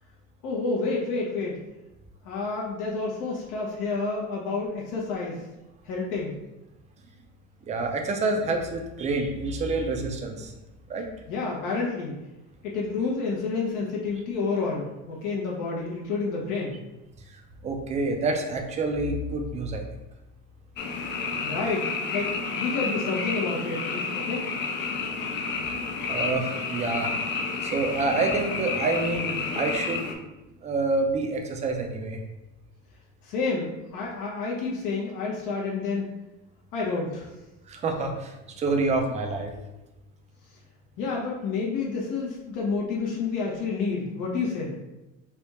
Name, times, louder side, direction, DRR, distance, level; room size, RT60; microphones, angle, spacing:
voice 1, 0.4-1.6 2.2-5.4 5.8-6.4 11.3-12.2 12.6-16.7 21.4-24.5 33.2-36.0 36.7-37.3 41.0-44.7, left 4 dB, 70° left, -3 dB, 0.9 m, -29 dB
voice 2, 7.7-10.5 10.9-11.1 17.6-19.8 26.1-27.1 27.6-30.2 30.6-32.2 37.7-39.5, right 3 dB, 20° right, 3 dB, 0.4 m, -27 dB
Frog, 20.8-30.1, left 4 dB, 35° left, 0.4 m, -30 dB
3.4 x 2.3 x 4.1 m, 0.99 s
cardioid pair, 150°, 32 cm